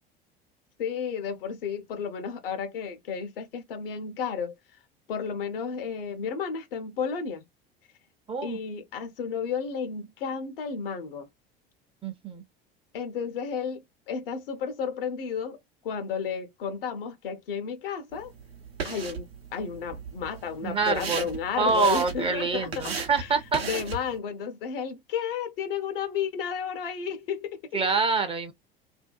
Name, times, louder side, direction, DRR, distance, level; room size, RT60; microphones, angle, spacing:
voice 1, 0.8-4.5 5.1-7.4 8.4-11.3 12.9-15.6 15.8-18.3 18.8-22.9 23.2-23.3 23.6-27.8, left 6 dB, 65° left, 0.8 m, -32 dB
voice 2, 8.3-8.6 12.0-12.4 20.6-21.2 21.6-23.6 27.7-28.5, right 4 dB, 20° right, 0.6 m, -26 dB
sound 1, 18.1-24.2, right 5 dB, 80° right, 0.7 m, -37 dB
2.7 x 2.2 x 2.2 m
figure-of-eight pair, 70°, 30 cm